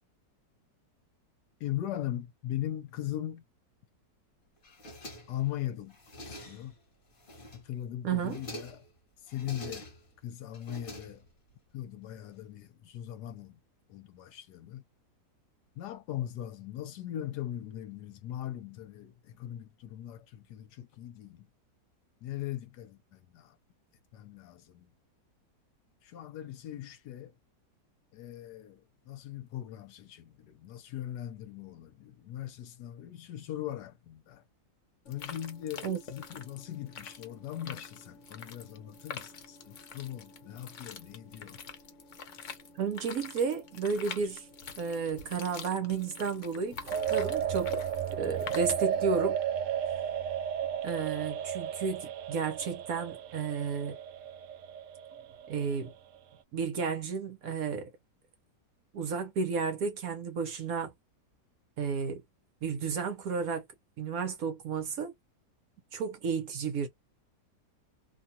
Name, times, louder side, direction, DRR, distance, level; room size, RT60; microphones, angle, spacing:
voice 1, 1.6-3.4 5.3-6.0 6.2-6.7 7.5-8.8 9.2-9.9 10.2-11.2 11.7-13.6 13.9-14.8 15.8-21.5 22.2-23.5 24.1-24.9 26.0-27.3 28.1-34.4 35.1-41.6, left 12 dB, 75° left, 1.1 m, -40 dB
sound 1, 4.6-5.5 5.9-6.8 7.2-7.8 8.1-8.9 9.3-10.2 10.5-11.5, equal, 35° left, 1.1 m, -46 dB
voice 2, 8.0-8.4 35.8-36.0 42.7-44.5 44.8-47.7 48.1-49.4 50.8-54.0 55.5-55.9 56.5-57.9 58.9-60.9 61.8-62.2 62.6-63.6 64.0-65.1 65.9-66.9, right 5 dB, 60° right, 1.1 m, -32 dB
sound 2, 35.1-49.1, left 6 dB, 60° left, 0.8 m, -46 dB
sound 3, 46.9-55.9, right 9 dB, 80° right, 0.7 m, -33 dB
2.9 x 2.3 x 2.6 m
omnidirectional pair, 1.9 m